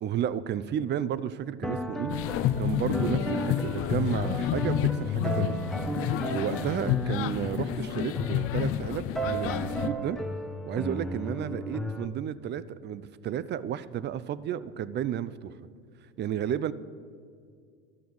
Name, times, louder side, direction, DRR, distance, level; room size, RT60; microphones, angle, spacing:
voice 1, 0.0-2.1 2.6-5.6 6.3-10.2 10.7-15.5 16.2-16.7, right 10 dB, 35° right, 17 dB, 0.5 m, -32 dB
sound 1, 1.6-12.1, right 1 dB, ahead, 0.7 m, -35 dB
sound 2, 2.1-9.9, left 11 dB, 45° left, 0.5 m, -29 dB
11.0 x 6.8 x 7.8 m, 2.2 s
supercardioid pair, 95°, 30 cm